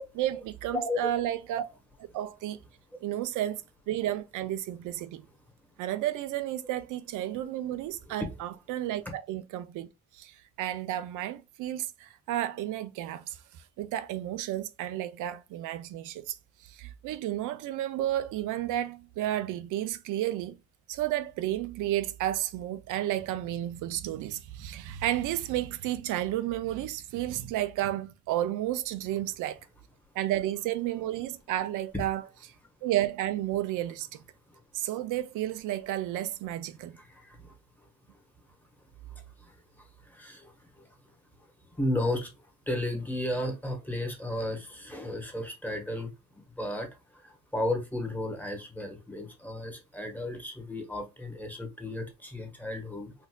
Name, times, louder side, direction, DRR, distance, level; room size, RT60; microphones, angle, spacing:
voice 1, 0.2-1.6 2.0-2.6 3.0-3.6 3.9-5.2 5.8-9.9 10.1-13.4 13.8-16.4 16.6-20.6 20.9-29.6 30.2-32.2 32.8-34.1 34.7-37.0, right 13 dB, 85° right, 0.5 m, -32 dB
voice 2, 37.0-37.5 40.1-40.5 41.8-42.3 42.7-46.1 46.6-46.9 47.2-53.1, left 1 dB, 5° left, 1.1 m, -33 dB
4.3 x 2.6 x 2.2 m
cardioid pair, 90°, 30 cm